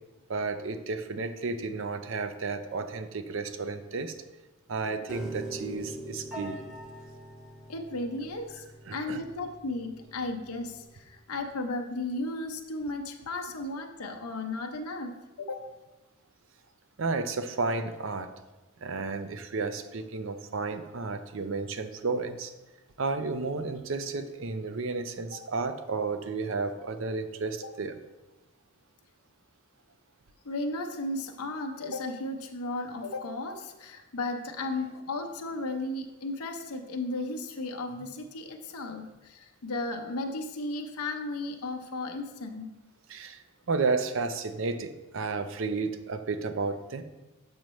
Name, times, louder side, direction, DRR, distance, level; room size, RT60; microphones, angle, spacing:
voice 1, 0.3-4.1 4.7-6.6 8.9-9.2 17.0-18.3 18.8-22.5 23.0-28.0 43.1-47.0, right 4 dB, 60° right, 9 dB, 0.5 m, -32 dB
Piano, 5.1-11.3, right 1 dB, 5° right, 0.8 m, -44 dB
voice 2, 7.7-8.6 8.9-15.7 25.3-25.5 27.6-27.7 30.4-42.7, left 2 dB, 85° left, 4 dB, 0.7 m, -35 dB
7.2 x 6.3 x 3.1 m, 1.1 s
head